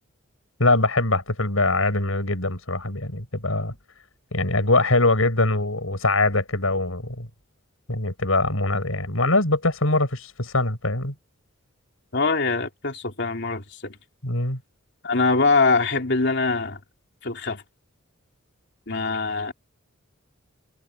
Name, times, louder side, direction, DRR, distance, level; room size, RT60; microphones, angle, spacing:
voice 1, 0.6-3.7 4.3-7.3 7.9-11.1 14.2-14.6, left 2 dB, 75° left, 6.9 m, -22 dB
voice 2, 12.1-14.0 15.0-16.8 17.2-17.6 18.9-19.5, left 3 dB, 55° left, 3.1 m, -23 dB
head